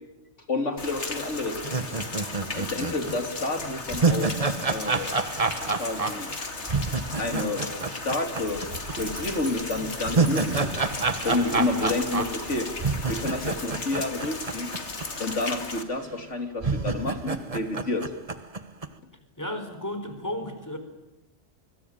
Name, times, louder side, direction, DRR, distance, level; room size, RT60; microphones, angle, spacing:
voice 1, 0.5-1.6 2.5-4.3 4.7-5.1 5.8-6.3 7.2-8.6 9.0-10.7 11.2-12.7 13.1-14.7 15.2-18.0, left 2 dB, 90° left, 6 dB, 3.5 m, -29 dB
Rain, 0.8-15.8, left 3 dB, 70° left, 2.7 m, -36 dB
sound 1, 1.6-8.9 9.2-9.3 9.8-15.0 15.3-15.4 16.1-16.2 16.6-18.9, right 4 dB, 30° right, 1.3 m, -28 dB
Dog, 8.4-13.9, right 1 dB, 80° right, 5.1 m, -43 dB
voice 2, 19.4-20.8, left 1 dB, 15° left, 7 dB, 4.4 m, -33 dB
24.5 x 24.0 x 8.9 m, 0.96 s
omnidirectional pair, 1.2 m